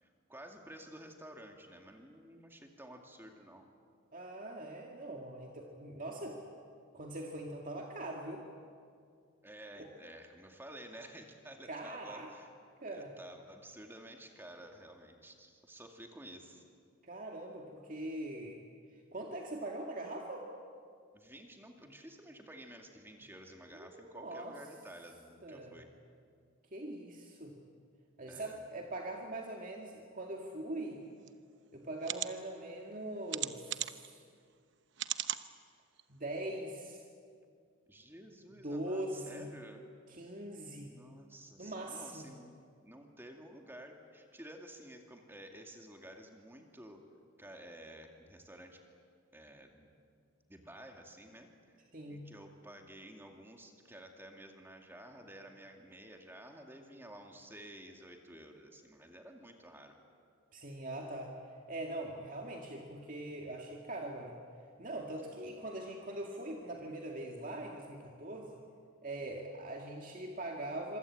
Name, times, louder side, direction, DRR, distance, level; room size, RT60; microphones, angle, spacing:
voice 1, 0.0-3.7 9.4-12.5 12.9-16.6 21.1-25.9 28.3-28.6 37.9-39.9 40.8-42.6 42.8-47.1 47.4-48.8 49.3-49.9 50.5-51.8 52.1-60.0, right 1 dB, 10° right, 3 dB, 2.3 m, -52 dB
voice 2, 4.1-6.4 6.9-8.4 11.7-12.3 12.8-13.1 17.0-18.6 19.1-20.5 23.8-24.5 25.4-25.8 26.7-27.6 28.2-31.0 31.7-34.2 36.1-37.0 38.6-39.5 40.1-40.9 41.6-42.3 51.9-52.2 60.5-61.4 61.7-64.4 64.8-68.6 69.0-71.0, right 1 dB, 40° right, 1 dB, 2.1 m, -42 dB
sound 1, 31.3-31.4 32.0-32.3 33.3-34.1 35.0-35.4 36.0-36.1 36.4-36.5, right 13 dB, 55° right, 0.9 m, -36 dB
26.5 x 24.5 x 8.7 m, 2.2 s
head